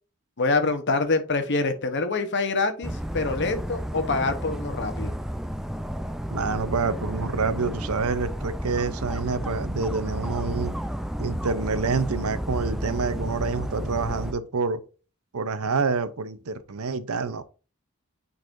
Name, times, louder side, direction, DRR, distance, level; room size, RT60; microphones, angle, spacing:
voice 1, 0.4-5.1, left 3 dB, 55° left, 1.0 m, -25 dB
Dog, 2.8-14.3, equal, ahead, 0.4 m, -31 dB
voice 2, 6.3-10.7 11.2-14.8 15.3-17.4, right 4 dB, 85° right, 0.7 m, -27 dB
9.1 x 4.0 x 2.6 m
head